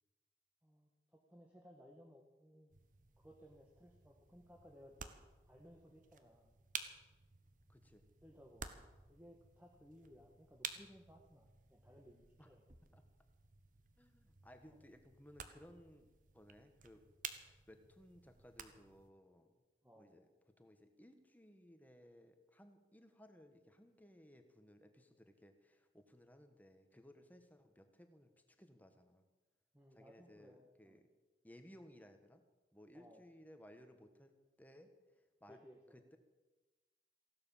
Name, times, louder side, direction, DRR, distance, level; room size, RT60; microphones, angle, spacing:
voice 1, 0.6-2.7 3.2-5.2 5.5-6.5 8.2-8.8 9.1-12.6 19.8-20.1 29.7-31.0 32.9-33.2 35.5-36.0, equal, 10° right, 0 dB, 1.5 m, -61 dB
sound 1, 2.7-19.1, right 7 dB, 45° right, 1.2 m, -54 dB
voice 2, 7.7-8.0 12.4-12.5 12.9-13.0 14.0-17.1 17.4-19.5 19.9-20.3 20.6-29.2 29.9-31.1 31.4-32.4 32.7-34.3 34.6-35.6 35.9-36.2, equal, 10° left, 7 dB, 1.4 m, -61 dB
16.0 x 11.5 x 7.2 m, 1.2 s
head